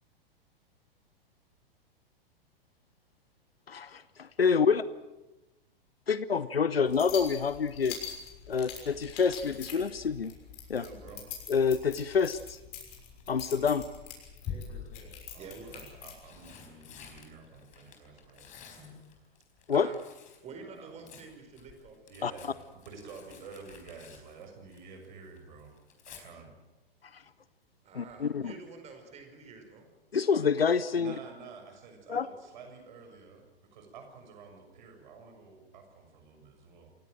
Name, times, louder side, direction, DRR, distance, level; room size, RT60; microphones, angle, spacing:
voice 1, 3.7-4.8 6.1-8.0 8.5-10.3 10.7-10.8 11.5-12.6 13.3-13.8 19.7-19.9 22.2-22.3 27.1-27.2 28.0-28.5 30.1-31.1 32.1-32.3, left 6 dB, 80° left, 16 dB, 0.8 m, -27 dB
sound 1, 6.9-16.2, left 8 dB, 40° left, 6.5 m, -45 dB
voice 2, 10.7-11.2 15.3-18.5 20.6-21.2 22.1-25.7 26.1-26.5 31.0-37.0, right 4 dB, 50° right, 4 dB, 6.7 m, -50 dB
Tearing, 12.9-13.4 14.4-15.2 16.0-20.5 20.8-25.1 25.4-26.2 28.1-28.4 28.7-28.8, left 7 dB, 25° left, 4.5 m, -47 dB
voice 3, 15.4-16.1 16.4-16.5 18.8-19.0 19.7-20.0 20.4-22.0 27.8-29.9, right 4 dB, 20° right, 6 dB, 5.0 m, -48 dB
28.5 x 16.5 x 7.7 m, 1.1 s
figure-of-eight pair, 105°, 30 cm